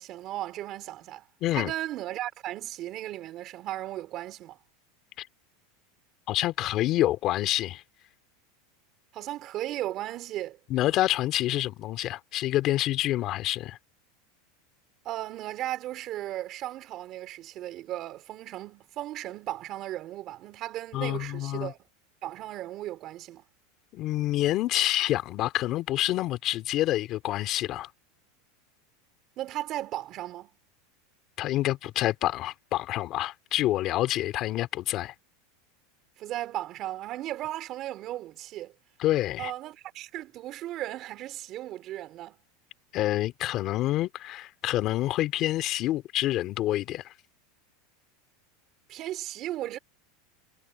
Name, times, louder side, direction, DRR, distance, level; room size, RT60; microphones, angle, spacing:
voice 1, 0.0-1.2 1.5-4.6 9.1-10.6 15.0-21.8 22.2-23.4 29.4-30.5 36.2-38.7 39.4-42.4 48.9-49.8, right 14 dB, 40° right, 3.6 m, -36 dB
voice 2, 1.4-1.7 5.2-5.3 6.3-7.8 10.7-13.8 20.9-21.7 23.9-27.9 31.4-35.1 39.0-39.5 42.9-47.1, left 15 dB, 45° left, 2.6 m, -27 dB
supercardioid pair, 130°, 0 cm